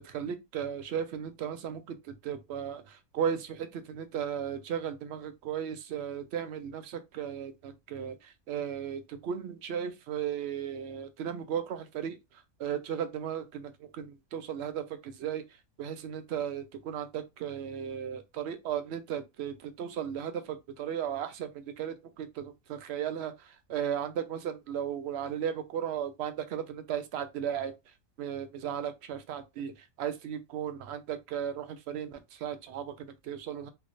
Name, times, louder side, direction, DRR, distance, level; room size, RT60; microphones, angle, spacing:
voice 1, 0.0-12.2 12.6-15.4 15.8-27.7 28.2-33.7, right 8 dB, 65° right, 0.7 m, -36 dB
3.2 x 2.8 x 2.5 m
omnidirectional pair, 1.4 m